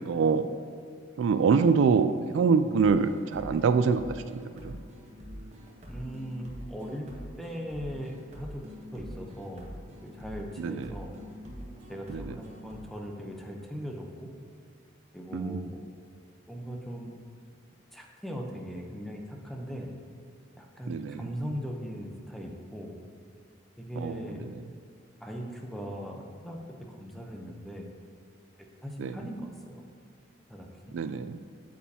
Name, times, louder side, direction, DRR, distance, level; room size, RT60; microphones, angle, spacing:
voice 1, 0.1-0.5 1.2-4.8 10.6-10.9 12.1-12.3 15.3-15.7 20.9-21.2 24.0-24.2 29.0-29.1 30.9-31.4, right 5 dB, 75° right, 11 dB, 0.3 m, -25 dB
sound 1, 2.8-12.8, equal, 35° right, 1.1 m, -45 dB
voice 2, 5.9-7.1 7.4-8.6 8.9-9.7 10.0-11.2 11.9-14.3 15.1-15.8 16.5-17.1 17.9-19.9 20.6-23.0 23.8-24.5 25.2-26.6 26.9-27.9 28.8-29.8 30.5-30.7, equal, ahead, 0 dB, 0.7 m, -39 dB
8.4 x 7.4 x 2.8 m, 2.3 s
head